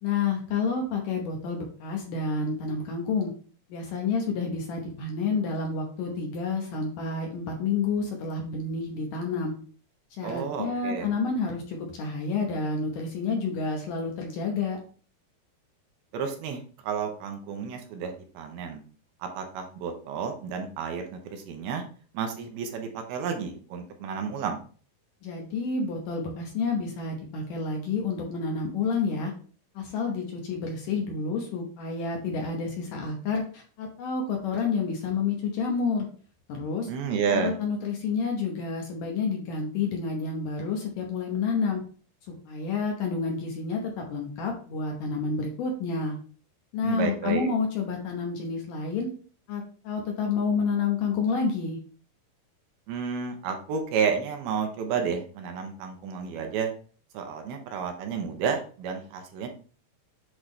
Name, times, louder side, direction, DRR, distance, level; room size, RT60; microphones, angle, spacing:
voice 1, 0.0-3.3 3.7-9.5 10.2-14.8 25.2-29.3 29.8-36.1 36.5-36.9 37.3-41.8 42.3-46.2 46.7-49.1 49.5-51.8, left 4 dB, 70° left, 1 dB, 2.2 m, -29 dB
voice 2, 10.2-11.1 16.1-18.8 19.2-21.8 22.1-24.6 36.9-37.5 46.8-47.5 52.9-56.7 57.1-59.5, right 6 dB, 80° right, 4 dB, 2.7 m, -31 dB
8.1 x 3.7 x 3.2 m, 0.42 s
omnidirectional pair, 4.6 m